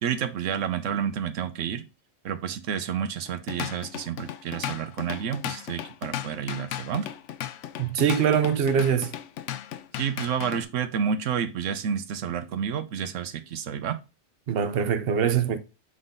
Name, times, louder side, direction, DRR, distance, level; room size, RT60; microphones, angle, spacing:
voice 1, 0.0-1.8 2.2-7.1 10.0-14.0, right 8 dB, 90° right, 1.1 m, -30 dB
Drum kit / Drum, 3.3-10.6, left 11 dB, 75° left, 0.9 m, -36 dB
voice 2, 7.8-9.1 14.5-15.6, right 7 dB, 55° right, 1.0 m, -23 dB
8.0 x 3.9 x 3.7 m
omnidirectional pair, 1.3 m